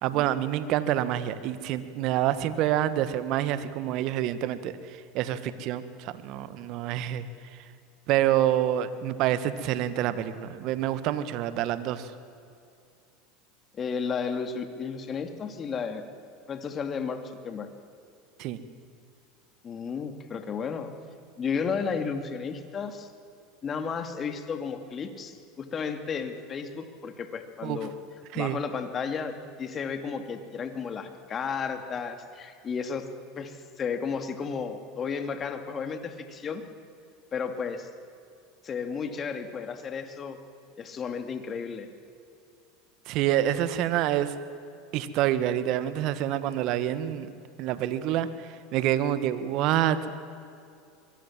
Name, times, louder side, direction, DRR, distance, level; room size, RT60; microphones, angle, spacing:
voice 1, 0.0-7.2 8.1-12.1 18.4-18.6 27.6-27.8 28.3-28.6 43.1-44.3 44.9-47.3 47.6-50.2, right 12 dB, 55° right, 13 dB, 1.7 m, -27 dB
voice 2, 13.7-16.0 16.5-17.7 19.6-20.9 21.4-23.1 23.6-27.9 28.3-33.1 33.4-36.6 37.3-37.9 38.6-40.4 40.8-41.9, left 6 dB, 35° left, 7 dB, 2.7 m, -33 dB
24.5 x 22.5 x 7.6 m, 2.5 s
hypercardioid pair, 90°, 0 cm